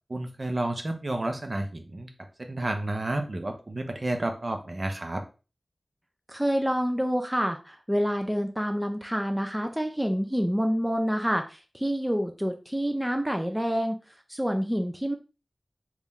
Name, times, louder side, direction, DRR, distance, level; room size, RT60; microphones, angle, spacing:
voice 1, 0.1-5.2, right 1 dB, 45° right, 5 dB, 0.7 m, -31 dB
voice 2, 6.3-14.0 14.3-15.2, equal, 5° right, 5 dB, 0.4 m, -27 dB
3.6 x 2.4 x 4.1 m, 0.33 s
wide cardioid pair, 75°, 0 cm